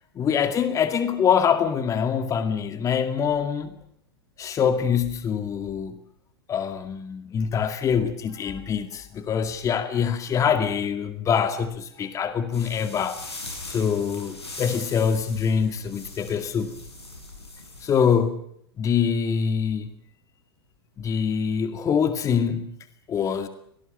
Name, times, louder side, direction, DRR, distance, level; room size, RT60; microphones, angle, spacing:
voice 1, 0.2-3.8 4.4-6.0 6.5-13.2 13.7-16.7 17.8-18.4 18.8-19.9 21.0-22.7 23.1-23.5, left 7 dB, 25° left, 2.1 m, -24 dB
sound 1, 12.5-18.1, left 2 dB, 85° left, 7.8 m, -40 dB
26.0 x 18.0 x 9.0 m
figure-of-eight pair, 100°, 13 cm